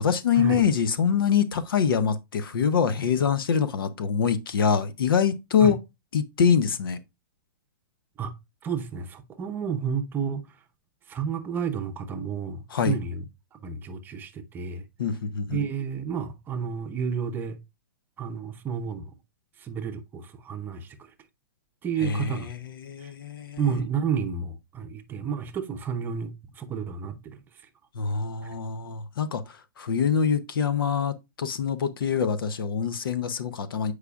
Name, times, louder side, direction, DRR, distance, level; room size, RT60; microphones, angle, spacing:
voice 1, 0.0-5.8 6.1-7.0 12.7-13.0 15.0-15.6 22.0-23.6 27.9-33.9, left 7 dB, 85° left, 0.8 m, -25 dB
voice 2, 8.6-10.5 11.1-13.2 13.5-14.9 15.5-17.6 18.2-19.1 19.6-21.0 21.8-22.5 23.0-23.1 23.6-27.4, right 6 dB, 15° right, 0.7 m, -31 dB
8.1 x 4.8 x 2.4 m
hypercardioid pair, 150°, 11 cm